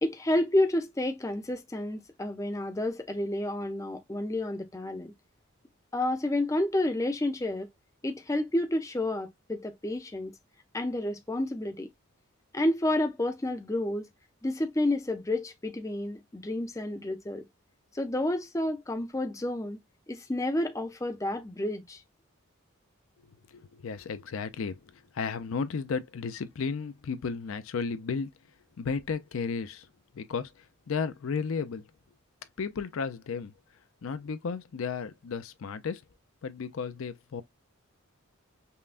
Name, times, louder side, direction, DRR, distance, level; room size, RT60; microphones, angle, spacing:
voice 1, 0.0-5.1 5.9-7.7 8.0-10.3 10.7-11.9 12.5-14.1 14.4-17.4 17.9-19.8 20.1-22.0, left 1 dB, 15° left, 0.5 m, -30 dB
voice 2, 23.5-28.3 28.8-29.9 30.1-30.5 30.9-31.8 32.6-33.5 34.0-36.0 36.4-37.4, left 5 dB, 70° left, 0.4 m, -33 dB
5.5 x 2.2 x 2.4 m
head